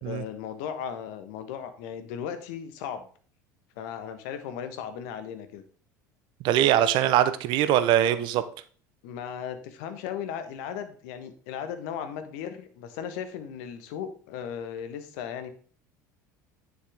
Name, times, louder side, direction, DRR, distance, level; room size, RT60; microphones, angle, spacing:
voice 1, 0.0-3.1 3.8-5.6 9.0-15.5, left 8 dB, 60° left, 9 dB, 1.3 m, -36 dB
voice 2, 6.4-8.4, right 11 dB, 55° right, 13 dB, 0.8 m, -22 dB
9.7 x 6.6 x 3.5 m, 0.43 s
figure-of-eight pair, 70°, 10 cm